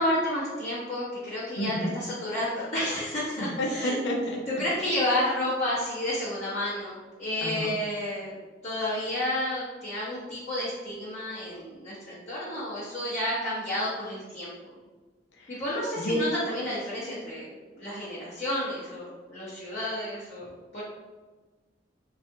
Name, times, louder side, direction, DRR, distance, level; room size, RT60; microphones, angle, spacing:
voice 1, 0.0-4.0 4.6-8.3 8.6-14.5 15.5-17.5 17.7-20.8, left 1 dB, 40° left, -11 dB, 0.8 m, -31 dB
voice 2, 1.6-1.9 3.4-4.4 7.4-7.8 15.4-15.6 16.0-16.2, equal, 80° left, 0 dB, 0.6 m, -30 dB
3.4 x 2.4 x 2.7 m, 1.3 s
head